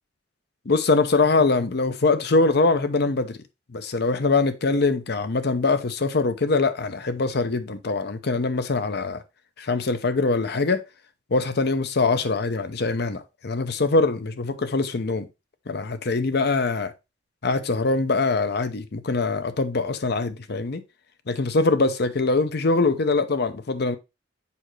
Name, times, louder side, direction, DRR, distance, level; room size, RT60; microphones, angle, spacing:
voice 1, 0.7-3.4 3.7-9.2 9.6-10.8 11.3-15.3 15.7-16.9 17.4-20.8 21.3-24.0, left 3 dB, 60° left, 0.7 m, -23 dB
6.9 x 5.0 x 3.2 m
head